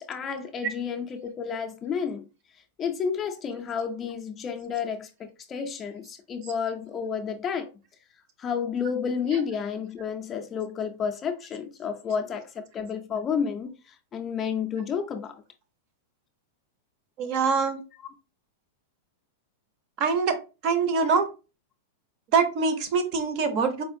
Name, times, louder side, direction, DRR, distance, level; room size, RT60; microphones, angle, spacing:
voice 1, 0.0-2.2 2.8-7.7 8.4-15.4, left 6 dB, 20° left, 0.4 m, -31 dB
voice 2, 17.2-17.8 20.0-20.4 20.6-21.3 22.3-23.8, right 5 dB, 40° right, 0.6 m, -24 dB
4.2 x 2.4 x 2.6 m
supercardioid pair, 155°, 0 cm